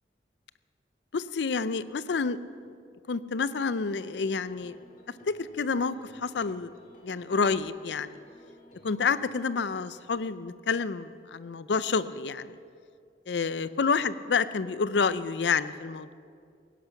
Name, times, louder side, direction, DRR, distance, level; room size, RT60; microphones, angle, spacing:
voice 1, 1.1-2.4 2.6-2.7 3.1-4.9 5.3-6.7 7.0-8.2 8.8-12.6 13.3-16.1, left 5 dB, 80° left, 15 dB, 0.5 m, -29 dB
sound 1, 3.7-10.0, equal, 45° left, 2.0 m, -56 dB
17.0 x 11.0 x 5.8 m, 2.3 s
head